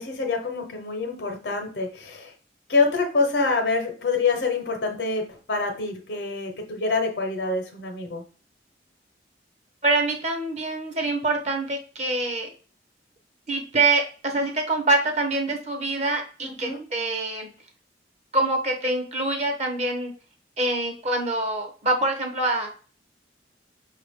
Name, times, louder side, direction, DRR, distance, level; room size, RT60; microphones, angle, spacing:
voice 1, 0.0-2.3 2.7-8.2 16.4-16.8, left 4 dB, 75° left, 4 dB, 0.9 m, -26 dB
voice 2, 9.8-12.5 13.5-17.5 18.3-20.1 20.6-22.7, right 2 dB, 40° right, 3 dB, 0.9 m, -25 dB
5.4 x 2.5 x 3.5 m, 0.39 s
head